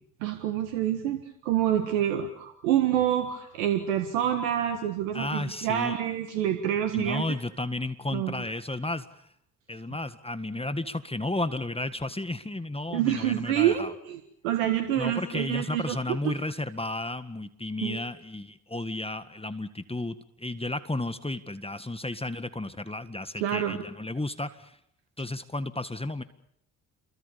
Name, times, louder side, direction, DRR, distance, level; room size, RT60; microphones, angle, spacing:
voice 1, 0.2-7.2 8.1-8.4 12.9-16.4 17.8-18.0 23.4-23.8, right 11 dB, 85° right, 7 dB, 1.7 m, -27 dB
voice 2, 5.1-6.0 6.9-9.3 9.7-13.9 15.0-24.8 25.2-26.2, left 2 dB, 15° left, 12 dB, 1.8 m, -33 dB
28.5 x 23.0 x 7.1 m, 0.73 s
hypercardioid pair, 45°, 40 cm